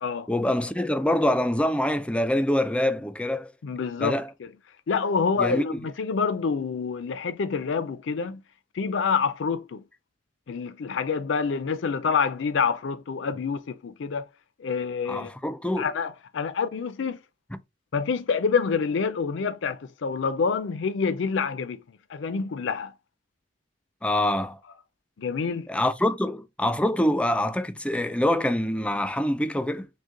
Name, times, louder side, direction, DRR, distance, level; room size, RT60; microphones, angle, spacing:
voice 1, 0.3-3.5 4.0-4.3 5.4-5.8 15.1-15.9 24.0-24.6 25.7-29.9, left 1 dB, 5° left, 0.4 m, -25 dB
voice 2, 3.6-4.2 4.9-8.4 8.7-9.8 10.5-14.3 14.6-15.3 15.8-17.2 17.9-21.8 22.1-22.9 25.2-25.7, left 5 dB, 70° left, 0.4 m, -27 dB
6.4 x 2.2 x 3.7 m
head